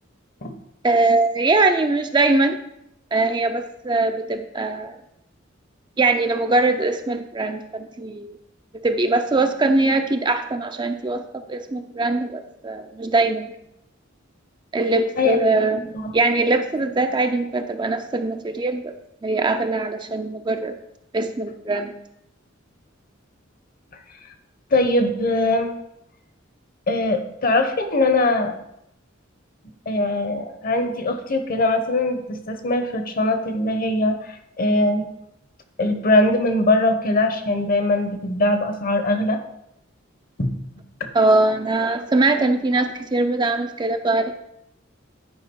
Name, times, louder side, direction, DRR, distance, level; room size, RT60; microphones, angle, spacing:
voice 1, 0.8-2.6 3.1-5.0 6.0-8.3 8.7-13.5 14.7-18.9 19.2-20.8 21.1-22.0 41.1-44.3, right 2 dB, 25° right, 6 dB, 0.5 m, -21 dB
voice 2, 24.7-25.7 26.9-28.6 29.9-35.1 35.8-39.4 40.4-40.5 41.0-41.1, left 2 dB, 45° left, 7 dB, 0.9 m, -21 dB
10.5 x 5.0 x 4.5 m, 0.82 s
head